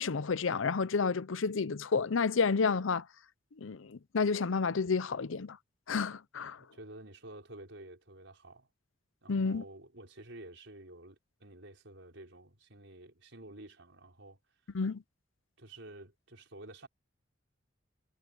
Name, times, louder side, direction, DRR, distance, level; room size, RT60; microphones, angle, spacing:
voice 1, 0.0-3.0 3.6-5.6 5.9-6.6 9.3-9.6 14.7-15.0, left 5 dB, 90° left, 0.6 m, -30 dB
voice 2, 6.6-8.7 9.2-14.4 15.6-16.9, right 1 dB, 70° right, 5.1 m, -51 dB
head